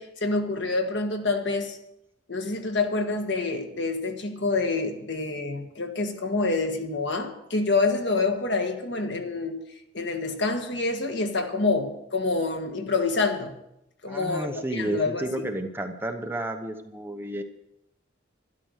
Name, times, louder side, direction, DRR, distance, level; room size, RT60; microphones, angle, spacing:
voice 1, 0.0-1.8 2.3-9.6 9.9-13.5 14.0-15.5, left 3 dB, 65° left, 1.7 m, -27 dB
voice 2, 14.1-17.4, right 1 dB, 10° right, 1.0 m, -31 dB
12.5 x 11.5 x 6.5 m
head